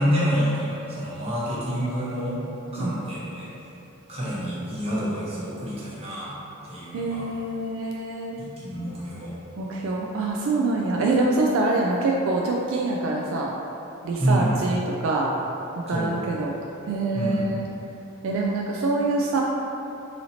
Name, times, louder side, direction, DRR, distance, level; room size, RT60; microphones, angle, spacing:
voice 1, 0.0-2.4 2.7-3.5 4.1-6.3 6.6-7.3 8.4-9.3 14.2-14.5 15.9-16.2 17.1-17.5, equal, 30° right, -9 dB, 0.9 m, -27 dB
voice 2, 6.9-8.4 9.6-13.5 14.0-15.3 15.9-16.6 16.9-17.6 18.2-19.4, right 2 dB, 70° right, -2 dB, 0.3 m, -25 dB
4.1 x 2.8 x 2.8 m, 3.0 s
head